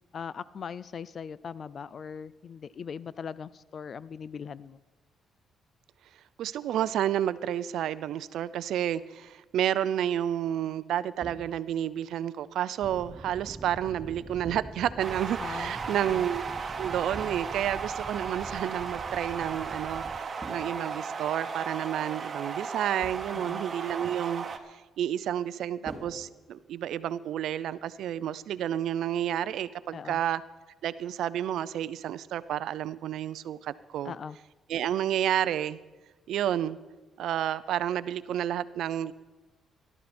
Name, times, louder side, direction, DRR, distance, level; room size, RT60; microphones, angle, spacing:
voice 1, 0.0-4.8 15.4-16.3 23.3-23.6 29.9-30.2 34.0-34.4, left 6 dB, 50° left, 18 dB, 0.5 m, -40 dB
voice 2, 6.4-16.4 16.8-30.4 30.8-34.1 34.7-35.8 36.3-36.8 37.2-39.1, right 11 dB, 75° right, 16 dB, 0.5 m, -30 dB
sound 1, 11.2-11.8 14.4-15.1 17.1-17.8 20.4-21.3 23.0-23.6 25.8-26.9, right 1 dB, 10° right, 2.6 m, -46 dB
sound 2, 12.8-20.2, right 3 dB, 25° right, 0.7 m, -45 dB
sound 3, 15.0-24.6, right 5 dB, 45° right, 1.2 m, -36 dB
17.0 x 12.0 x 4.3 m, 1.2 s
cardioid pair, 90°, 0 cm